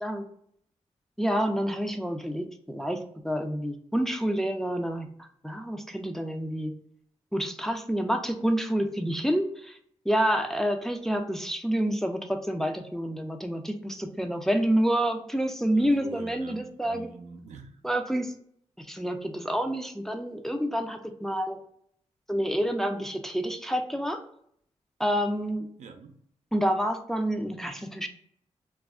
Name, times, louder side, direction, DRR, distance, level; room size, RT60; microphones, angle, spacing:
voice 1, 1.2-6.7 7.3-9.8 10.1-17.1 17.8-18.3 18.8-21.6 22.3-24.2 25.0-25.7 26.5-28.1, equal, 5° left, 0.4 m, -28 dB
voice 2, 16.0-17.8 25.8-26.1, right 4 dB, 75° right, 0.4 m, -45 dB
2.3 x 2.0 x 3.4 m
cardioid pair, 50°, 12 cm